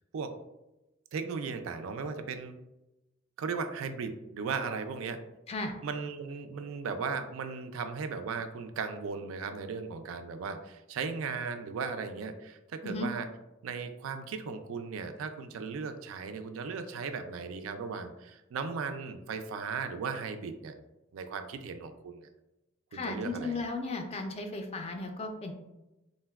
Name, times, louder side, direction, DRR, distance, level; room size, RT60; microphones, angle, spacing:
voice 1, 1.1-2.6 3.4-5.2 5.8-13.3 13.6-20.7 21.1-22.3 22.9-23.6, right 5 dB, 80° right, 8 dB, 0.3 m, -37 dB
voice 2, 22.9-25.5, left 2 dB, 30° left, 4 dB, 0.3 m, -35 dB
3.8 x 2.1 x 2.2 m, 0.97 s
head